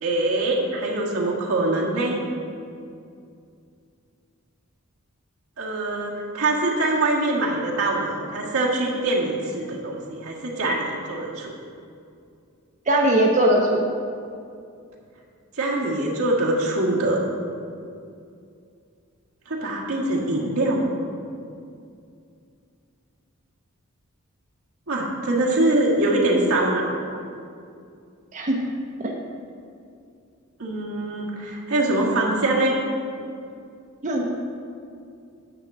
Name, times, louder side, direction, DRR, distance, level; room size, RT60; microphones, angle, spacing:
voice 1, 0.0-2.2 5.6-11.6 15.6-17.3 19.5-20.9 24.9-26.9 30.6-32.7, right 2 dB, 85° right, -3 dB, 1.7 m, -23 dB
voice 2, 12.9-13.8 28.3-28.6 29.0-29.1 34.0-34.2, right 1 dB, 35° right, -1 dB, 0.7 m, -19 dB
9.7 x 3.7 x 7.3 m, 2.4 s
head